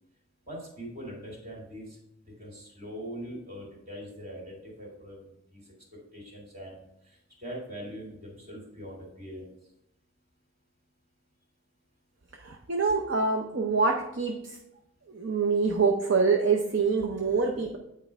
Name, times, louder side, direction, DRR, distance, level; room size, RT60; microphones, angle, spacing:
voice 1, 0.5-2.0 2.4-5.6 6.1-9.5, equal, 45° right, -3 dB, 2.3 m, -42 dB
voice 2, 12.3-14.6 15.1-17.8, right 4 dB, 60° right, 2 dB, 0.6 m, -26 dB
9.3 x 4.5 x 3.4 m, 0.82 s
head